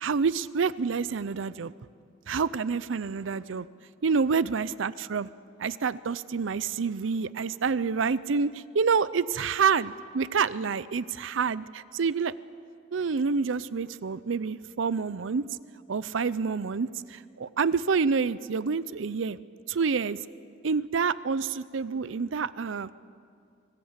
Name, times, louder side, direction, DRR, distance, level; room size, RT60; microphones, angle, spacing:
voice 1, 0.0-1.7 2.3-3.7 4.0-5.3 5.6-12.3 12.9-15.5 15.9-19.4 19.7-20.2 20.6-22.9, right 5 dB, 70° right, 17 dB, 0.5 m, -28 dB
25.0 x 20.0 x 8.1 m, 2.3 s
head